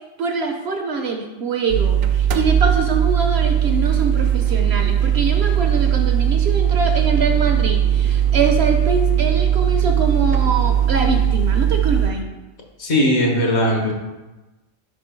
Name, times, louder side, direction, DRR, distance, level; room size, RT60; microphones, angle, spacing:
voice 1, 0.2-12.3, right 4 dB, 60° right, 4 dB, 0.8 m, -24 dB
sound 1, 1.7-12.1, right 9 dB, 85° right, 1.0 m, -18 dB
voice 2, 12.8-13.9, equal, 60° left, 0 dB, 1.4 m, -18 dB
5.6 x 4.5 x 4.3 m, 1.1 s
omnidirectional pair, 1.3 m